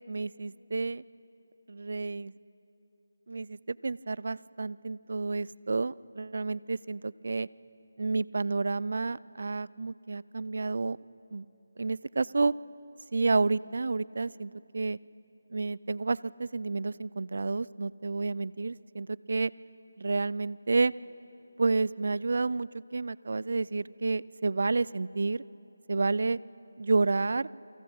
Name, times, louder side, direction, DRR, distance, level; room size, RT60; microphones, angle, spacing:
voice 1, 0.1-1.0 1.7-2.3 3.3-7.5 8.0-11.0 11.3-11.5 11.8-12.5 13.1-15.0 15.5-19.5 20.0-20.9 21.6-25.4 25.9-26.4 26.8-27.5, right 3 dB, 60° right, 22 dB, 0.4 m, -30 dB
28.5 x 24.5 x 5.5 m, 2.9 s
figure-of-eight pair, 160°, 0 cm